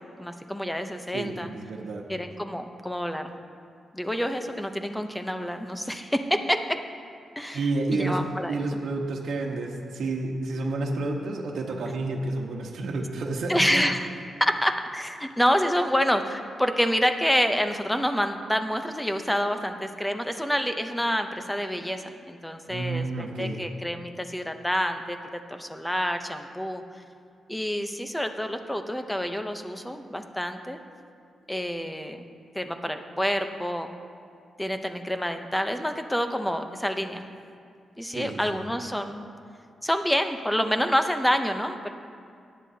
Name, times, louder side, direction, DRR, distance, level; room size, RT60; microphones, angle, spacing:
voice 1, 0.2-1.5 2.1-3.3 3.9-6.8 7.4-8.6 13.5-14.1 14.4-25.2 25.5-26.8 27.5-30.8 31.5-32.3 32.5-33.9 34.6-37.3 38.0-39.3 39.8-41.9, equal, 5° left, 7 dB, 0.7 m, -27 dB
voice 2, 1.1-2.0 7.5-8.2 8.5-13.8 22.7-23.6 38.1-38.6, right 2 dB, 80° right, -1 dB, 1.1 m, -30 dB
17.5 x 10.5 x 2.8 m, 2.3 s
cardioid pair, 110°, 0 cm